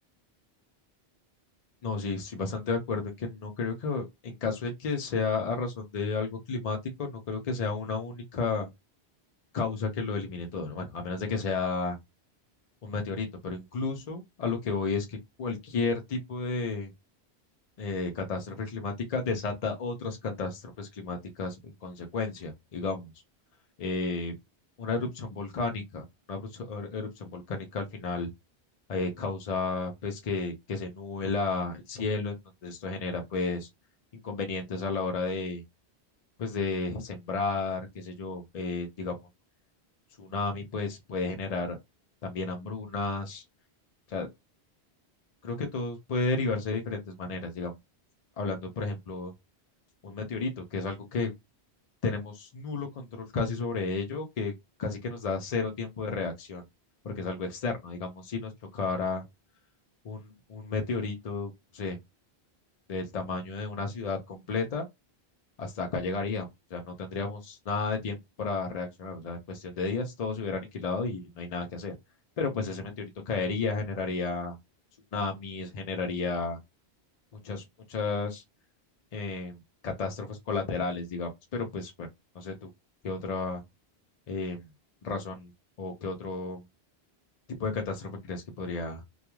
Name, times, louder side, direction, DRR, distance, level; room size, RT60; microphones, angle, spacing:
voice 1, 1.8-8.7 9.5-12.0 12.8-16.9 17.8-23.1 23.8-24.3 24.8-28.3 28.9-32.3 32.6-33.7 34.1-35.6 36.4-39.2 40.2-41.8 42.2-43.4 44.1-44.3 45.4-47.8 48.4-49.3 50.0-51.3 52.0-54.5 54.8-56.6 57.0-59.2 60.0-62.0 62.9-64.9 65.6-71.9 72.4-74.6 75.1-76.6 77.4-78.4 79.1-79.6 79.8-82.1 82.3-82.7 83.0-83.6 84.3-84.7 85.0-85.5 85.8-86.6 87.6-89.0, left 4 dB, 50° left, 0.5 m, -32 dB
2.3 x 2.2 x 3.0 m
omnidirectional pair, 1.1 m